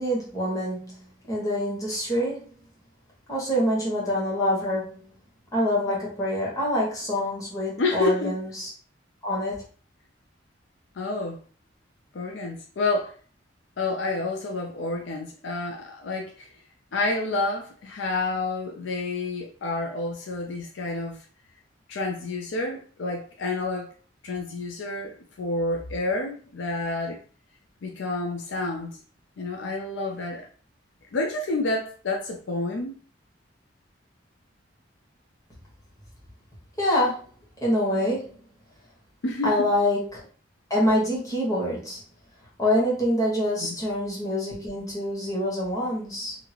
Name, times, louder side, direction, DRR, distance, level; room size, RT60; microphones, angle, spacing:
voice 1, 0.0-2.5 3.3-5.1 5.5-8.7 9.2-9.6 36.8-37.2 37.6-38.4 39.4-40.2 40.7-42.0 42.6-46.4, left 1 dB, 20° left, 1.3 m, -26 dB
voice 2, 7.8-8.4 11.0-11.4 12.1-13.2 13.8-16.5 16.9-21.2 21.9-23.9 24.2-27.2 27.8-29.0 29.4-30.5 31.1-33.0 39.2-39.7 43.6-43.8, left 2 dB, 70° left, 0.5 m, -29 dB
3.0 x 2.8 x 2.4 m
head